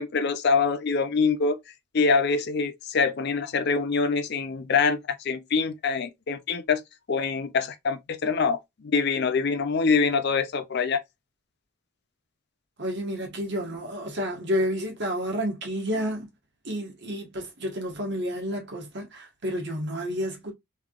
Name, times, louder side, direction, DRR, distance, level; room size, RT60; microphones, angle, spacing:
voice 1, 0.0-1.6 1.9-6.8 7.1-11.0, left 5 dB, 50° left, 0.5 m, -25 dB
voice 2, 12.8-16.3 16.6-20.5, equal, 50° right, 1.4 m, -30 dB
3.5 x 3.2 x 2.3 m
head